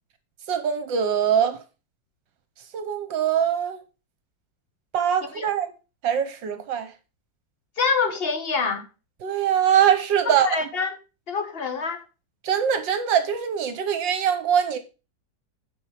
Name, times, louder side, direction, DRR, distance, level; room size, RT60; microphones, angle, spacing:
voice 1, 0.5-1.6 2.7-3.8 4.9-5.7 6.0-6.9 9.2-10.5 12.4-14.8, right 8 dB, 75° right, 1.5 m, -22 dB
voice 2, 7.8-8.9 10.2-11.0 11.3-12.0, left 5 dB, 35° left, 1.3 m, -26 dB
9.0 x 5.4 x 5.7 m
omnidirectional pair, 2.1 m